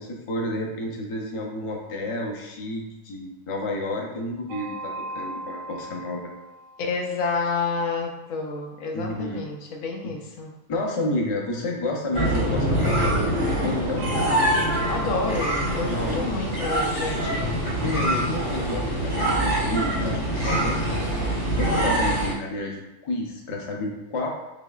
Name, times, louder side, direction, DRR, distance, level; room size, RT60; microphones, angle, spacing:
voice 1, 0.0-6.3 8.9-9.4 10.0-10.2 10.7-14.1 15.9-16.3 17.8-24.3, left 1 dB, 40° left, 0 dB, 0.5 m, -30 dB
sound 1, 4.5-7.5 12.2-17.1, right 1 dB, 85° right, 1.0 m, -38 dB
voice 2, 6.8-10.5 14.9-17.6, left 4 dB, 85° left, 2 dB, 1.1 m, -29 dB
sound 2, 12.1-22.3, right 1 dB, 55° left, 1.7 m, -24 dB
5.0 x 3.2 x 2.3 m, 0.97 s
omnidirectional pair, 1.3 m